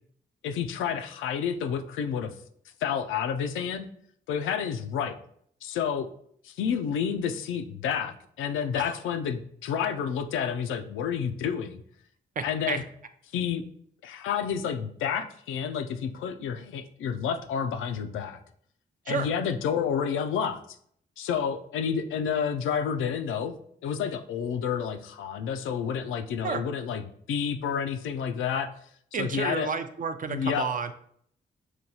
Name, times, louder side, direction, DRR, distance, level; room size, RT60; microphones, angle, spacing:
voice 1, 0.4-2.3 2.8-3.9 4.3-5.2 5.6-6.1 6.4-11.8 12.4-12.8 13.3-13.6 14.0-18.4 19.1-20.6 21.2-23.5 23.8-28.7 29.2-29.7 30.3-30.7, left 7 dB, 90° left, 8 dB, 0.4 m, -30 dB
voice 2, 12.4-12.8 19.1-19.3 26.4-26.6 29.1-30.9, right 5 dB, 45° right, 9 dB, 0.5 m, -31 dB
6.1 x 2.3 x 2.7 m, 0.65 s
cardioid pair, 60°, 20 cm